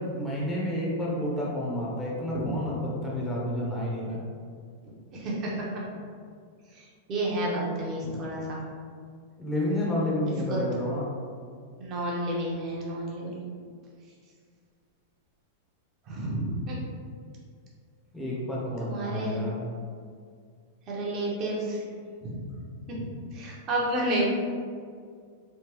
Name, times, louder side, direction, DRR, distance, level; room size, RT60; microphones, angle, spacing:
voice 1, 0.0-4.2 9.4-11.1 18.1-19.7, left 1 dB, 5° left, -6 dB, 0.7 m, -30 dB
voice 2, 5.1-5.6 7.1-8.6 10.5-10.6 11.8-13.4 16.1-16.7 18.8-19.4 20.9-21.8 22.2-22.4 22.9-23.0 23.3-24.2, right 1 dB, 35° right, -4 dB, 0.8 m, -30 dB
3.4 x 2.1 x 3.0 m, 2.1 s
supercardioid pair, 140°, 0 cm